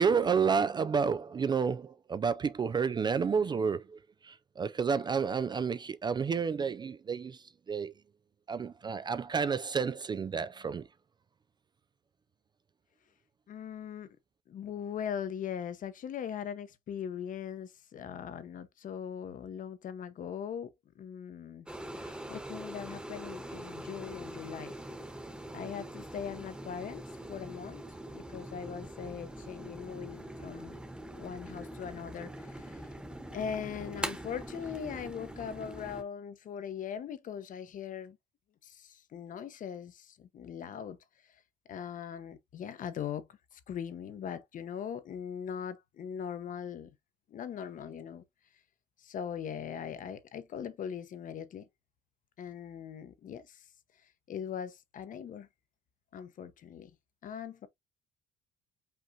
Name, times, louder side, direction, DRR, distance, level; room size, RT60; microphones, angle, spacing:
voice 1, 0.0-7.9 8.5-10.9, right 6 dB, 25° right, 0.3 m, -30 dB
voice 2, 13.5-14.2 14.5-21.7 22.0-24.8 25.5-27.8 28.1-30.8 31.1-32.9 33.3-38.2 38.6-41.0 41.7-46.9 47.3-48.2 49.0-51.7 52.4-53.6 54.3-55.5 56.1-56.9 57.2-57.7, left 8 dB, 50° left, 0.9 m, -40 dB
sound 1, 21.7-36.0, right 1 dB, 5° right, 1.1 m, -43 dB
5.4 x 3.5 x 2.8 m
cardioid pair, 110°, 17 cm